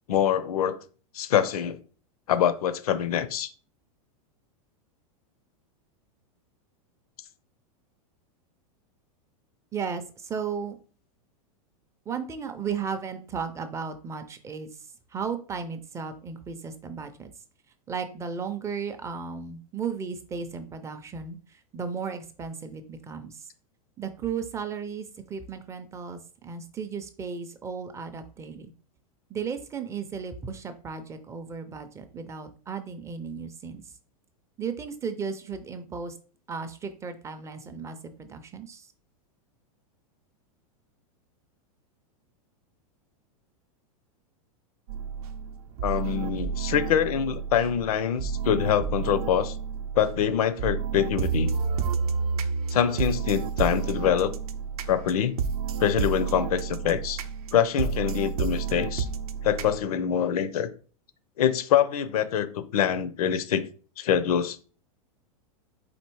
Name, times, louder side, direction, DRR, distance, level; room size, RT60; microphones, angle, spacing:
voice 1, 0.1-0.8 1.1-1.8 2.3-3.5 45.8-49.5 50.0-51.5 52.7-54.3 54.9-55.3 55.8-57.2 57.5-59.1 59.4-60.7 61.4-63.6 64.0-64.6, left 9 dB, 80° left, 14 dB, 0.6 m, -25 dB
voice 2, 9.7-10.7 12.1-14.7 15.1-17.3 17.9-23.5 24.0-28.7 29.3-33.8 34.6-36.1 36.5-38.9, right 6 dB, 15° right, 9 dB, 0.4 m, -35 dB
sound 1, 44.9-59.8, right 6 dB, 80° right, 0.6 m, -30 dB
4.3 x 2.7 x 4.5 m, 0.39 s
supercardioid pair, 140°, 19 cm